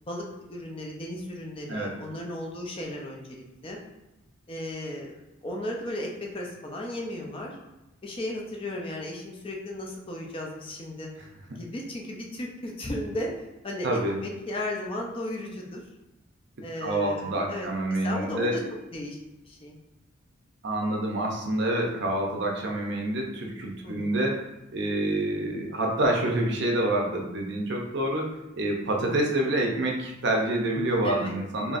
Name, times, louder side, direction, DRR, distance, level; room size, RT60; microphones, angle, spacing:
voice 1, 0.0-3.4 3.6-3.8 4.5-5.1 5.4-7.6 8.0-11.1 11.5-13.3 13.6-15.8 16.6-17.7 18.0-18.6 18.9-19.2 19.4-19.8 23.8-24.2 31.0-31.3, left 1 dB, 25° left, -1 dB, 0.5 m, -35 dB
voice 2, 13.8-14.2 16.8-18.6 20.6-24.4 24.7-31.8, right 1 dB, 55° right, 0 dB, 0.6 m, -27 dB
4.0 x 2.9 x 2.5 m, 0.96 s
head